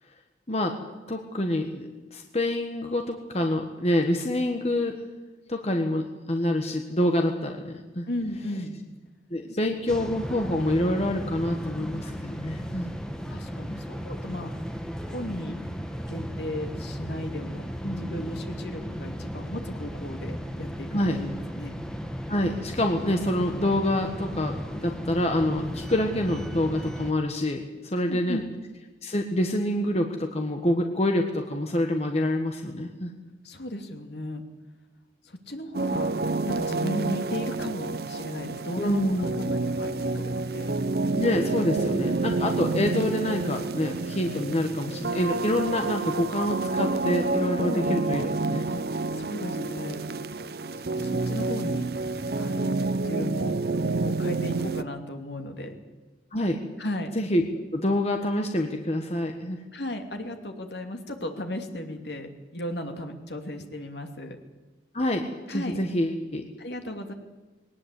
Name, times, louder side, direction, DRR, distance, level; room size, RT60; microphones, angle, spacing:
voice 1, 1.1-5.0 5.5-8.1 9.3-12.9 17.8-18.2 20.9-21.2 22.3-28.4 29.0-33.1 38.8-39.3 41.2-48.8 56.3-56.6 57.1-57.4 57.7-59.6 64.9-66.5, left 1 dB, 35° left, 4 dB, 1.5 m, -27 dB
voice 2, 8.1-8.8 9.7-9.8 13.3-14.5 15.1-15.6 16.1-17.6 18.0-21.7 27.9-28.4 33.4-34.4 35.2-40.8 41.7-42.1 47.6-47.8 49.2-50.0 50.8-51.9 52.4-53.6 54.0-55.7 56.8-57.1 59.7-64.4 65.5-65.8 66.6-67.1, left 1 dB, 65° left, 5 dB, 2.7 m, -35 dB
sound 1, 9.9-27.1, equal, 5° left, 1.4 m, -35 dB
sound 2, 35.7-54.8, right 3 dB, 55° right, 0.7 m, -29 dB
21.0 x 18.5 x 8.4 m, 1.2 s
head